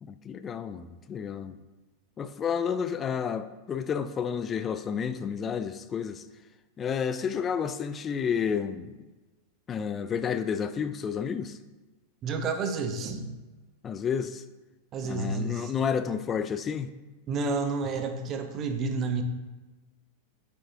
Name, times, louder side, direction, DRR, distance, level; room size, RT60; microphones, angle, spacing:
voice 1, 0.0-1.6 2.2-6.2 6.8-8.9 9.7-11.6 13.8-14.4 15.0-16.9, left 7 dB, 25° left, 0.4 m, -30 dB
voice 2, 12.2-13.4 14.9-15.7 17.3-19.2, right 4 dB, 30° right, 0.8 m, -30 dB
8.9 x 7.0 x 2.8 m
figure-of-eight pair, 90°, 0 cm